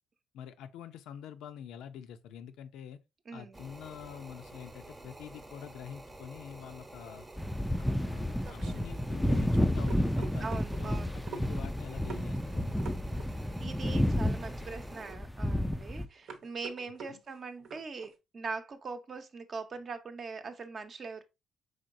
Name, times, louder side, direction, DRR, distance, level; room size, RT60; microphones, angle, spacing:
voice 1, 0.3-3.0 3.3-7.3 7.7-12.8 17.1-17.2, left 9 dB, 90° left, 0.5 m, -46 dB
voice 2, 3.3-3.6 10.4-11.2 13.6-21.2, right 4 dB, 45° right, 0.7 m, -41 dB
sound 1, 3.5-15.1, right 1 dB, 20° right, 0.8 m, -50 dB
sound 2, 7.4-16.1, equal, 5° left, 0.3 m, -31 dB
sound 3, 8.4-18.2, right 5 dB, 80° right, 0.9 m, -48 dB
5.0 x 3.8 x 2.6 m
cardioid pair, 90°, 0 cm